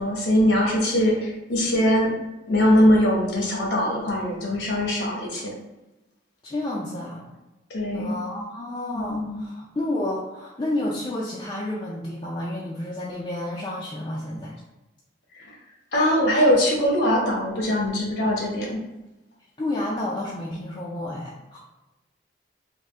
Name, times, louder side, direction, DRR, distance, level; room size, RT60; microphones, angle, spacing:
voice 1, 0.0-2.1 2.5-5.5 7.7-8.1 8.9-9.4 15.3-15.5 15.9-18.8, equal, 70° left, -3 dB, 1.1 m, -21 dB
voice 2, 6.4-7.3 7.9-14.6 19.6-21.6, left 1 dB, 25° left, -5 dB, 0.4 m, -30 dB
3.6 x 2.7 x 3.2 m, 1.0 s
head